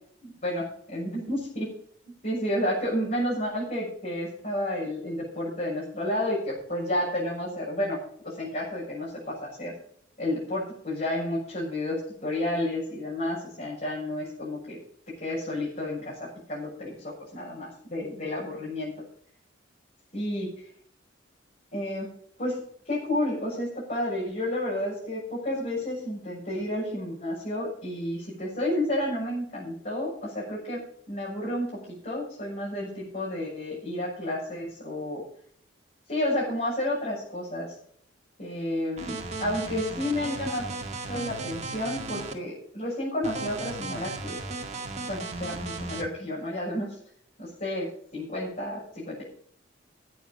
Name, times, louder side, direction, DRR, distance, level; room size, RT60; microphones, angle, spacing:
voice 1, 0.2-1.7 2.2-8.0 8.2-9.7 10.2-14.8 15.2-18.9 20.1-20.5 21.7-22.1 22.4-22.6 22.8-30.8 31.1-35.2 36.1-37.7 38.4-40.7 41.1-44.4 45.1-47.0 47.4-49.2, left 1 dB, 40° left, -6 dB, 6.7 m, -31 dB
sound 1, 39.0-42.3 43.2-46.0, right 3 dB, 35° right, 2.0 m, -35 dB
15.0 x 9.7 x 5.5 m, 0.62 s
head